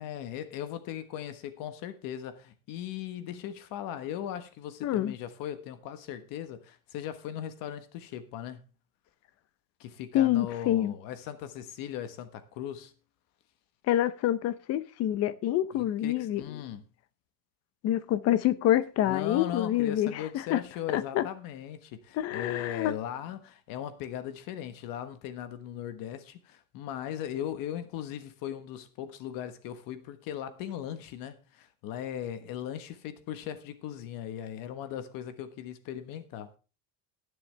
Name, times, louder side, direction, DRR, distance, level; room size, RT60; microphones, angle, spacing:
voice 1, 0.0-8.6 9.8-12.9 15.7-16.9 19.1-36.5, left 10 dB, 50° left, 1.3 m, -38 dB
voice 2, 4.8-5.1 10.1-10.9 13.9-16.4 17.8-20.6 20.9-21.2 22.2-22.9, left 12 dB, 35° left, 0.7 m, -27 dB
19.0 x 7.1 x 3.4 m
cardioid pair, 170°, 42 cm